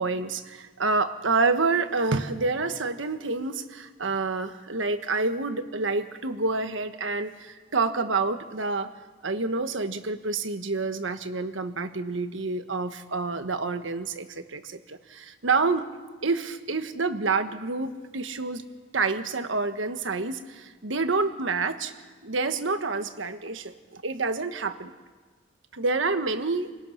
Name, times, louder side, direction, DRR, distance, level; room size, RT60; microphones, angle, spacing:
voice 1, 0.0-8.9 9.2-15.9 16.2-18.6 18.9-21.9 22.2-24.9 25.7-26.7, right 3 dB, 80° right, 8 dB, 1.4 m, -28 dB
28.5 x 19.5 x 5.9 m, 1.4 s
head